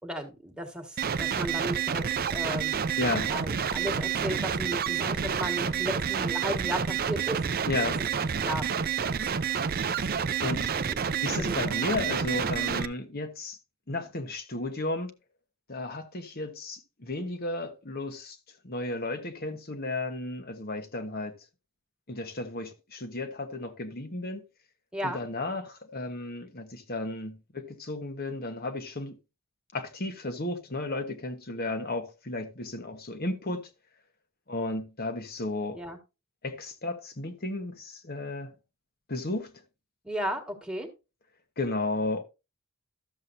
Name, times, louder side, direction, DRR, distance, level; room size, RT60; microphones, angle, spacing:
voice 1, 0.0-2.8 3.2-7.7 8.2-8.7 10.9-11.0 11.4-11.6 24.9-25.2 35.7-36.0 40.0-40.9, equal, 5° right, 1.7 m, -35 dB
sound 1, 1.0-12.9, right 7 dB, 40° right, 0.5 m, -29 dB
voice 2, 3.0-3.3 7.7-8.0 10.4-10.7 11.2-13.6 13.9-15.1 15.7-18.4 18.6-21.4 22.1-24.4 25.0-29.2 29.7-33.7 34.5-35.8 36.4-38.5 39.1-39.5 41.6-42.2, left 2 dB, 45° left, 1.2 m, -33 dB
13.0 x 7.5 x 2.6 m
head